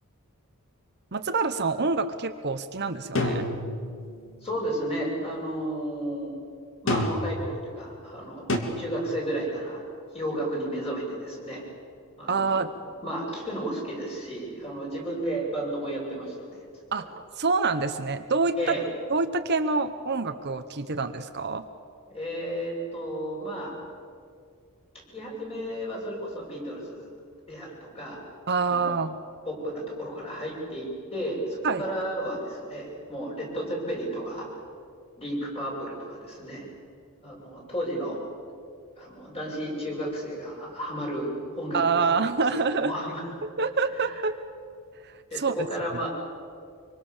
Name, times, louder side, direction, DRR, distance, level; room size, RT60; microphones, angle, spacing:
voice 1, 1.1-3.5 12.3-12.7 16.9-17.1 17.4-18.8 19.1-21.6 28.5-29.2 31.6-31.8 41.7-42.9 43.6-44.3 45.0-45.7, right 4 dB, 50° right, 8 dB, 1.0 m, -26 dB
sound 1, 3.1-4.1 6.9-7.5 8.5-8.6, left 1 dB, 60° left, 2.8 m, -27 dB
voice 2, 4.4-6.3 6.8-8.5 8.8-9.8 10.1-11.6 12.2-16.6 17.0-17.1 18.6-18.8 22.1-23.7 25.1-27.1 27.5-28.2 28.7-29.0 29.5-34.5 35.2-36.7 37.2-38.2 39.0-42.4 42.7-43.3 45.3-46.1, right 1 dB, 25° left, -3 dB, 7.9 m, -33 dB
25.5 x 24.5 x 7.3 m, 2.3 s
head